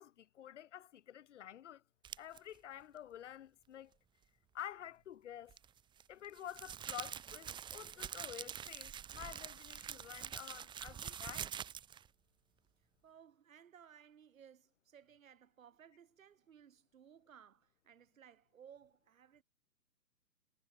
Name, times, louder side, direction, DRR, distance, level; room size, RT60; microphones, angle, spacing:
voice 1, 0.0-1.8 2.2-4.0 4.5-5.6 6.1-11.5, left 10 dB, 45° left, 5.2 m, -50 dB
sound 1, 2.0-2.4 5.5-12.1, right 9 dB, 10° right, 1.6 m, -46 dB
voice 2, 13.0-19.4, right 8 dB, 55° right, 6.2 m, -60 dB
figure-of-eight pair, 130°, 49 cm